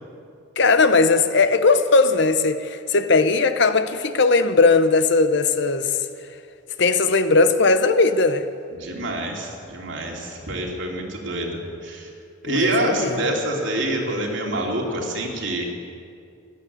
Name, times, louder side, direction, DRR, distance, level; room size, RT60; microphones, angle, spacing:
voice 1, 0.6-5.9 6.8-8.4 12.5-13.2, left 3 dB, 60° left, 11 dB, 0.8 m, -18 dB
voice 2, 8.7-12.1 12.4-15.7, right 1 dB, 65° right, -1 dB, 3.0 m, -26 dB
14.5 x 11.0 x 8.3 m, 2.4 s
head